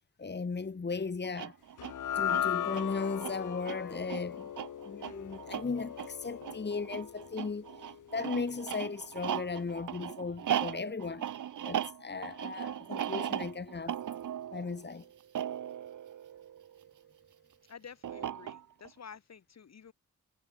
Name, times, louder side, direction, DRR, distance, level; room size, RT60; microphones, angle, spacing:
voice 1, 0.2-1.6 2.1-4.5 4.9-7.7 8.1-11.3 11.6-14.0 14.5-15.1, left 4 dB, 35° left, 2.6 m, -36 dB
sound 1, 1.2-17.0 18.0-18.9, right 10 dB, 80° right, 1.9 m, -38 dB
sound 2, 1.8-8.2, left 10 dB, 80° left, 2.0 m, -37 dB
voice 2, 17.7-19.9, left 7 dB, 60° left, 3.4 m, -50 dB
cardioid pair, 85°, 30 cm